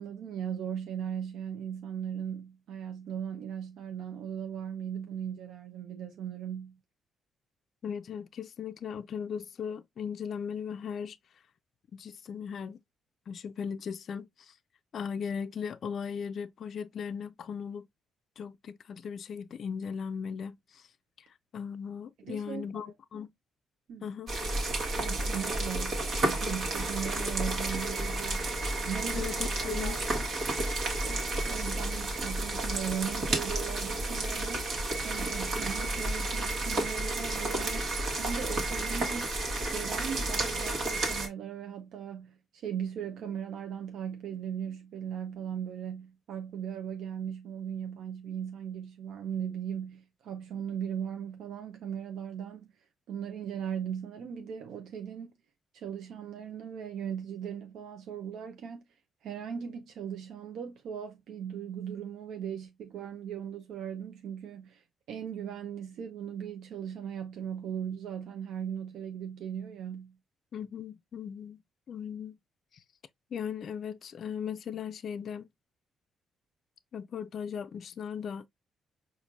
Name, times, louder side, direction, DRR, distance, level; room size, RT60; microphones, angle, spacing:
voice 1, 0.0-6.8 22.2-22.9 23.9-24.1 25.0-29.3 29.6-30.0 31.0-34.8 35.0-39.3 39.7-52.7 53.1-55.3 55.7-58.8 59.2-70.2, right 8 dB, 80° right, 0.5 m, -38 dB
voice 2, 7.8-11.2 11.9-12.8 13.3-14.5 14.9-17.9 18.4-20.9 21.2-21.3 21.5-23.3 24.0-24.3 29.1-30.0 70.5-71.6 71.9-72.4 73.3-75.5 76.9-78.5, left 7 dB, 60° left, 0.3 m, -37 dB
sound 1, 24.3-41.3, right 2 dB, 60° right, 1.3 m, -31 dB
4.5 x 2.5 x 2.4 m
cardioid pair, 90°, 0 cm